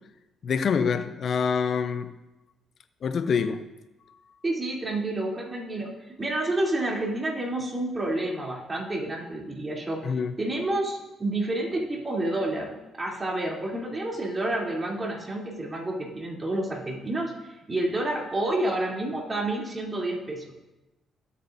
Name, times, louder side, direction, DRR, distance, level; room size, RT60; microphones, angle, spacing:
voice 1, 0.4-2.1 3.0-3.6 10.0-10.3, left 6 dB, 55° left, 0.6 m, -26 dB
voice 2, 4.4-20.7, right 1 dB, 25° right, 3.1 m, -29 dB
19.5 x 8.4 x 2.7 m
cardioid pair, 90°, 0 cm